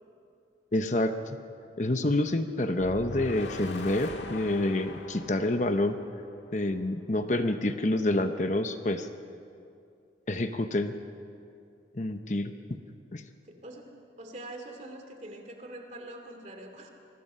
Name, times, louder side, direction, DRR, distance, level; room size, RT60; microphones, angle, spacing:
voice 1, 0.7-1.4 1.8-6.0 6.5-9.1 10.3-10.9 11.9-12.5 13.1-13.2, left 1 dB, 40° left, 8 dB, 0.9 m, -28 dB
sound 1, 2.8-6.9, left 2 dB, 80° left, 1.7 m, -41 dB
voice 2, 13.4-13.9 14.2-16.9, right 1 dB, 40° right, 4 dB, 2.6 m, -44 dB
27.0 x 21.0 x 5.6 m, 2.5 s
head